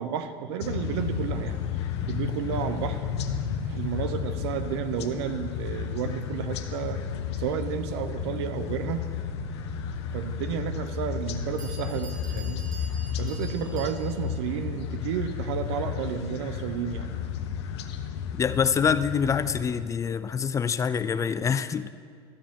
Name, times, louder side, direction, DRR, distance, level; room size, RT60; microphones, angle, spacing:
voice 1, 0.0-1.6 2.1-3.0 3.6-7.0 7.3-9.1 10.1-12.6 13.2-17.1, right 8 dB, 85° right, 10 dB, 0.8 m, -32 dB
sound 1, 0.6-19.8, left 7 dB, 90° left, 0.8 m, -32 dB
Bell, 11.2-11.3 11.6-14.4, right 3 dB, 30° right, 2.0 m, -46 dB
voice 2, 18.4-21.9, left 7 dB, 25° left, 13 dB, 0.3 m, -25 dB
13.0 x 5.2 x 7.0 m, 2.1 s
supercardioid pair, 115°, 14 cm